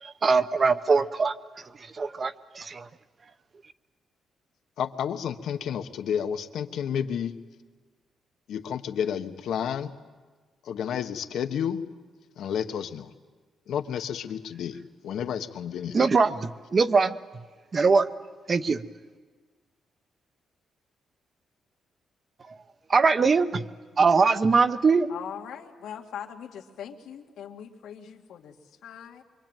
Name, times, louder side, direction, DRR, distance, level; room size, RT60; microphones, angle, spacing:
voice 1, 0.0-1.4 1.9-2.9 15.9-17.2 17.7-18.1 18.5-18.8 22.9-23.7 24.0-25.1, right 4 dB, 30° right, 12 dB, 0.8 m, -22 dB
voice 2, 4.8-7.4 8.5-9.9 10.6-11.9 12.4-13.1 13.7-16.1, left 8 dB, 70° left, 8 dB, 1.2 m, -31 dB
voice 3, 25.1-29.2, left 8 dB, 90° left, 2 dB, 2.3 m, -41 dB
25.0 x 24.5 x 9.1 m, 1.4 s
wide cardioid pair, 175°, 0 cm